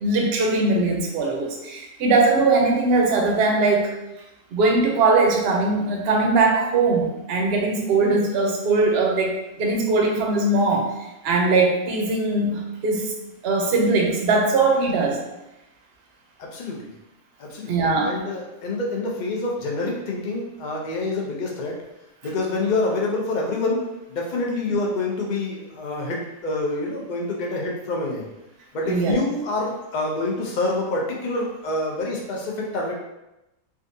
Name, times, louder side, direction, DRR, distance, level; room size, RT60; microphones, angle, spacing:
voice 1, 0.0-3.9 4.5-10.9 11.2-13.1 13.4-15.2 17.7-18.1 28.8-29.2, right 3 dB, 60° right, 1 dB, 0.7 m, -20 dB
voice 2, 16.4-16.9 17.4-21.8 22.2-28.3 28.7-32.9, left 2 dB, 65° left, -1 dB, 0.4 m, -27 dB
3.5 x 2.4 x 2.6 m, 0.94 s
omnidirectional pair, 1.5 m